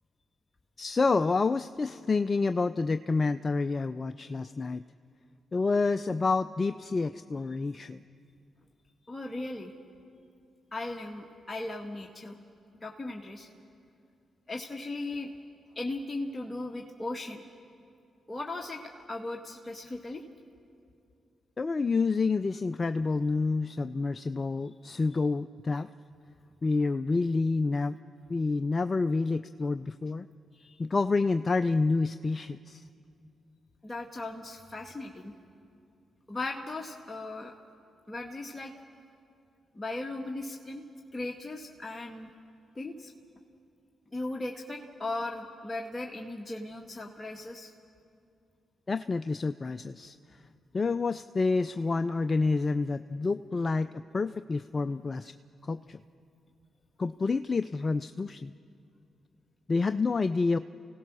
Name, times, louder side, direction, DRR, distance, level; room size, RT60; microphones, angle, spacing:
voice 1, 0.8-4.8 5.5-8.0 21.6-25.9 26.6-28.0 28.3-30.3 30.8-32.8 48.9-50.1 50.7-53.9 54.1-55.3 55.7-56.0 57.0-58.5 59.7-60.6, left 3 dB, 40° left, 12 dB, 0.5 m, -28 dB
voice 2, 9.1-9.7 10.7-12.4 12.8-13.5 14.5-15.3 15.7-17.4 18.3-20.2 30.5-30.8 33.8-35.3 36.3-37.5 38.1-38.7 39.7-40.8 41.1-42.3 42.7-43.1 44.1-47.7, left 2 dB, 25° left, 1 dB, 1.7 m, -37 dB
29.0 x 16.5 x 6.2 m, 2.5 s
hypercardioid pair, 40°, 0 cm